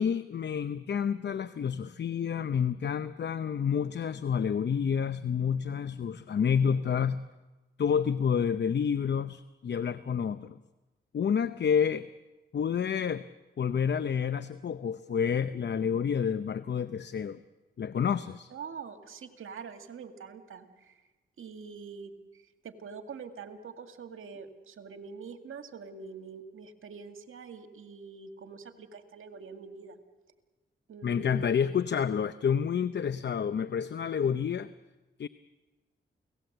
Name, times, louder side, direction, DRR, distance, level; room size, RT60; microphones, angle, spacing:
voice 1, 0.0-7.2 7.8-10.6 11.1-12.1 12.5-13.2 13.6-17.4 17.8-18.5 31.0-34.7 35.2-35.3, left 7 dB, 55° left, 13 dB, 0.7 m, -29 dB
voice 2, 18.5-21.0 21.4-30.0 30.9-31.5, right 5 dB, 75° right, 6 dB, 2.1 m, -45 dB
29.5 x 18.0 x 7.9 m, 1.2 s
cardioid pair, 60°, 21 cm